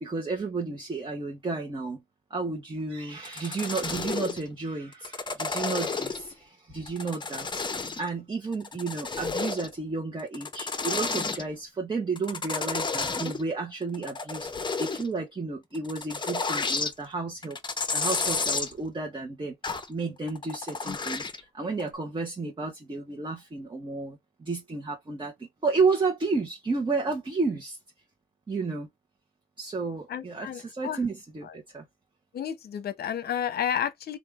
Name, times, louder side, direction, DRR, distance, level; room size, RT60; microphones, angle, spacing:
voice 1, 0.0-2.0 2.3-7.6 8.0-17.6 17.9-27.8 28.5-28.9 29.6-31.8, right 4 dB, 25° right, 1.1 m, -32 dB
sound 1, 3.2-4.4 4.9-6.3 6.9-8.1 8.5-9.7 10.2-11.4 12.2-13.4 13.8-15.1 15.7-16.9 17.4-18.7 19.6-19.9 20.3-21.4 21.8-21.9, left 4 dB, 25° left, 0.8 m, -31 dB
voice 2, 30.1-31.0 32.3-34.2, left 9 dB, 55° left, 0.9 m, -31 dB
3.3 x 2.6 x 3.5 m
cardioid pair, 90°, 20 cm